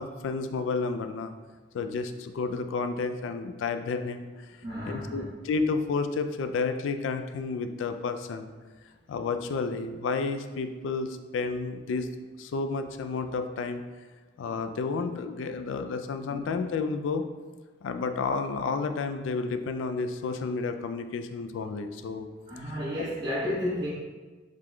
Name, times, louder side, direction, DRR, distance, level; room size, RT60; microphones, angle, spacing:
voice 1, 0.0-1.3 1.7-4.3 4.9-8.5 9.1-12.1 12.4-13.8 14.4-17.3 17.8-22.3 22.6-22.7, left 4 dB, 80° left, 9 dB, 0.3 m, -31 dB
voice 2, 4.6-5.3 16.3-16.5 22.5-23.9, left 1 dB, 60° right, -11 dB, 1.1 m, -32 dB
4.9 x 3.7 x 2.2 m, 1.3 s
head